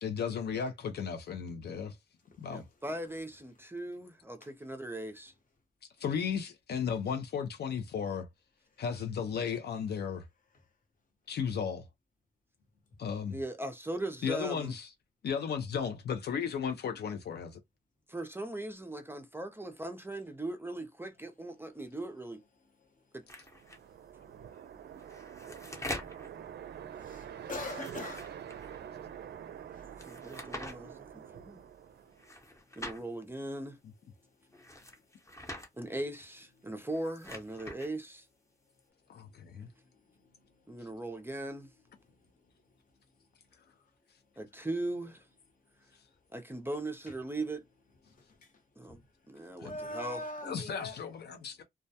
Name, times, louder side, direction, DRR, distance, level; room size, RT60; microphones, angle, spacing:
voice 1, 0.0-2.0 2.4-2.6 6.0-8.3 8.8-10.3 11.3-11.8 13.0-13.4 14.2-14.9 15.2-17.6 39.1-39.7 49.6-49.7 50.4-51.6, left 7 dB, 65° left, 0.4 m, -35 dB
voice 2, 2.5-5.3 13.3-14.7 18.1-22.4 23.1-23.2 29.8-31.7 32.8-33.8 35.8-38.3 40.7-41.7 44.4-45.1 46.3-47.6 48.8-49.0 49.3-50.2, right 1 dB, 10° right, 0.4 m, -39 dB
sound 1, 23.3-23.8 24.9-26.3 27.5-28.8 30.0-30.7 32.2-33.0 34.5-35.7 36.8-37.9, left 1 dB, 15° left, 0.7 m, -44 dB
sound 2, 23.4-32.4, right 9 dB, 75° right, 0.4 m, -46 dB
voice 3, 27.0-28.3 29.7-29.8 40.2-40.3 40.7-40.9 48.4-48.5 48.9-49.0 49.6-51.0, left 2 dB, 50° left, 0.9 m, -41 dB
2.2 x 2.1 x 2.7 m
cardioid pair, 90°, 18 cm